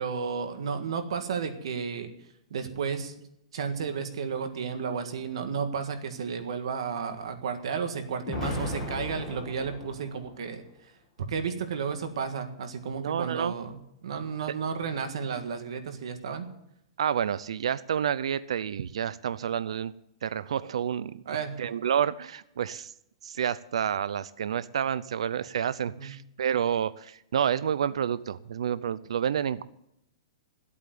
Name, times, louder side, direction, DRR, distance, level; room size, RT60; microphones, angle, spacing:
voice 1, 0.0-2.1 2.5-3.1 3.5-10.9 11.3-13.7 14.0-16.5 21.2-21.6 25.9-26.1, right 6 dB, 65° right, 7 dB, 1.7 m, -32 dB
Explosion, 8.3-10.4, left 3 dB, 10° left, 2.2 m, -36 dB
voice 2, 13.0-13.5 17.0-19.9 20.2-21.2 21.6-22.9 23.2-29.6, right 8 dB, 85° right, 16 dB, 0.5 m, -29 dB
13.0 x 8.4 x 9.3 m, 0.79 s
hypercardioid pair, 180°, 3 cm